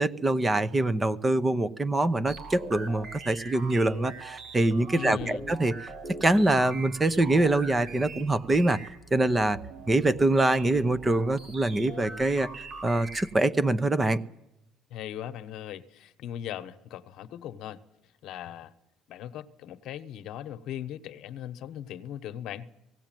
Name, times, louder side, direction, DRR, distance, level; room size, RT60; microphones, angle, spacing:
voice 1, 0.0-5.7 6.2-8.8 9.1-9.6 9.9-14.2, right 2 dB, 15° right, 0.8 m, -24 dB
sound 1, 2.3-13.4, right 2 dB, 50° right, 4.8 m, -42 dB
voice 2, 4.9-5.5 14.9-17.8 18.2-18.7 19.1-22.7, left 11 dB, 70° left, 1.1 m, -39 dB
18.0 x 17.0 x 9.1 m
cardioid pair, 145°, 0 cm